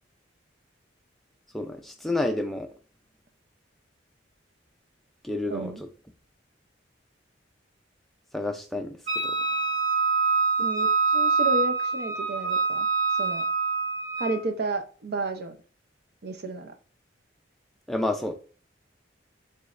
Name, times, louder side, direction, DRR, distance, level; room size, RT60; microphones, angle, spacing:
voice 1, 1.5-2.7 5.2-5.7 8.3-9.0 9.2-9.3 17.9-18.3, left 2 dB, ahead, 0.3 m, -29 dB
voice 2, 5.5-5.8 10.6-12.9 13.1-13.4 14.2-15.6 16.2-16.7, right 2 dB, 55° right, 0.5 m, -32 dB
Wind instrument woodwind instrument, 9.1-14.4, right 4 dB, 35° right, 1.1 m, -25 dB
3.9 x 3.1 x 2.4 m
head